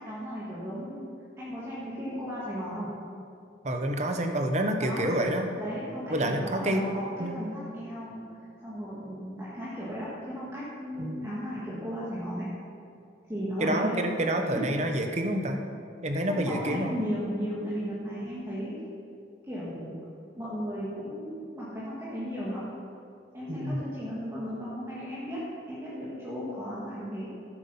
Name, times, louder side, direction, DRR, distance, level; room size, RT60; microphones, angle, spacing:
voice 1, 0.0-2.9 4.8-5.1 5.6-8.2 8.6-12.5 13.3-14.0 14.5-14.7 16.3-18.8 19.5-20.0 20.3-22.6 23.3-27.3, equal, 15° right, -9 dB, 1.9 m, -35 dB
voice 2, 3.6-5.5 6.1-6.9 7.2-7.3 11.0-11.3 13.6-15.6 16.0-17.0 23.5-23.8, right 1 dB, 35° right, 4 dB, 1.0 m, -28 dB
13.5 x 8.1 x 5.6 m, 2.4 s
head